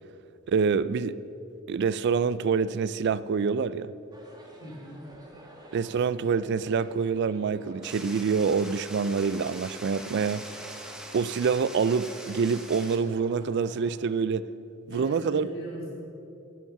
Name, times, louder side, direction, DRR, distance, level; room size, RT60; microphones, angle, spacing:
voice 1, 0.5-1.2 1.7-3.9 5.7-10.4 11.1-14.4 14.9-15.5, right 5 dB, 55° right, 0.3 m, -26 dB
sound 1, 4.1-13.9, right 1 dB, 20° right, 1.5 m, -51 dB
voice 2, 4.6-5.1 14.9-15.9, equal, 85° left, 2.7 m, -40 dB
sound 2, 7.8-13.0, right 1 dB, 5° right, 1.0 m, -43 dB
11.0 x 10.0 x 5.9 m
head